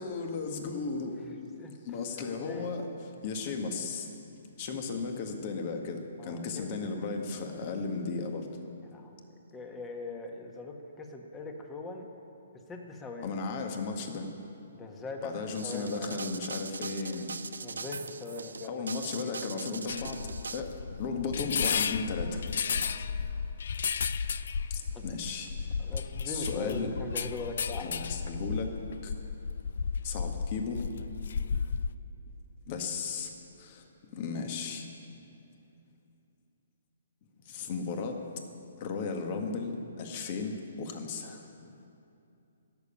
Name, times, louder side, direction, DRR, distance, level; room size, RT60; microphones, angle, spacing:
voice 1, 0.0-1.2 1.8-2.9 3.2-4.1 4.6-8.5 13.2-14.3 15.2-17.3 18.6-22.4 24.7-25.7 26.2-26.9 27.8-28.7 29.0-29.1 30.0-30.9 32.7-33.9 34.1-34.9 37.4-38.2 38.8-41.5, left 4 dB, 40° left, 4 dB, 1.6 m, -35 dB
voice 2, 1.2-1.7 2.1-3.0 6.2-6.7 8.8-9.1 9.5-12.1 12.7-13.3 14.7-15.3 15.6-16.2 17.6-18.9 22.7-23.0 24.9-25.1 25.8-28.0, left 3 dB, 15° left, 3 dB, 1.5 m, -41 dB
sound 1, 15.6-20.6, right 4 dB, 80° right, 0.6 m, -40 dB
sound 2, 19.9-32.0, left 6 dB, 65° left, 0.5 m, -33 dB
14.0 x 7.0 x 9.9 m, 2.7 s
hypercardioid pair, 135°, 0 cm